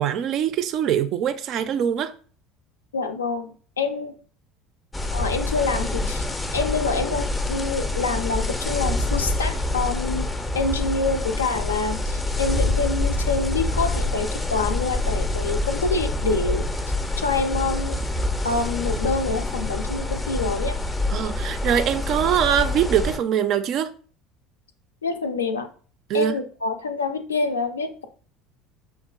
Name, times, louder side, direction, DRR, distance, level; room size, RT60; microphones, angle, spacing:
voice 1, 0.0-2.1 21.1-23.9 26.1-26.4, right 9 dB, 50° right, 0.4 m, -23 dB
voice 2, 2.9-4.1 5.1-6.3 6.5-10.3 10.5-16.6 17.2-18.0 18.4-20.8 25.0-25.7 26.1-28.1, left 4 dB, 80° left, 0.4 m, -26 dB
sound 1, 4.9-23.2, left 2 dB, 15° left, 0.5 m, -26 dB
5.7 x 2.4 x 2.3 m
figure-of-eight pair, 65°, 0 cm